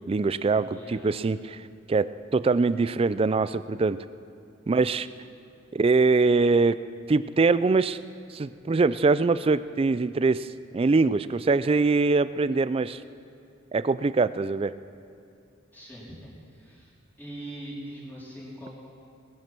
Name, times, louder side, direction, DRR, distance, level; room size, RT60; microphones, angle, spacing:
voice 1, 0.1-1.6 1.9-4.0 4.7-5.1 5.7-6.8 7.1-8.0 8.3-10.5 10.7-13.0 13.7-14.7, right 3 dB, 30° right, 15 dB, 0.3 m, -23 dB
voice 2, 0.7-1.1 15.7-16.9 17.2-18.7, right 1 dB, 10° left, -7 dB, 4.0 m, -42 dB
19.5 x 10.5 x 6.0 m, 2.5 s
head